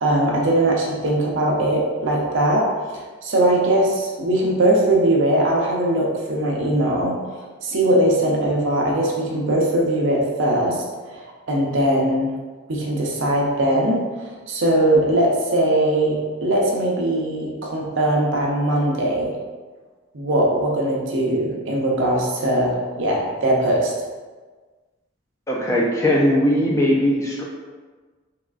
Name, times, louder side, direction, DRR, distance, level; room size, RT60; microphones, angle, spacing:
voice 1, 0.0-2.7 3.2-7.2 7.6-12.3 12.7-19.3 20.1-23.9, right 1 dB, 60° right, -2 dB, 0.6 m, -20 dB
voice 2, 25.5-27.4, equal, 15° left, -3 dB, 0.3 m, -19 dB
3.6 x 2.3 x 2.2 m, 1.4 s
head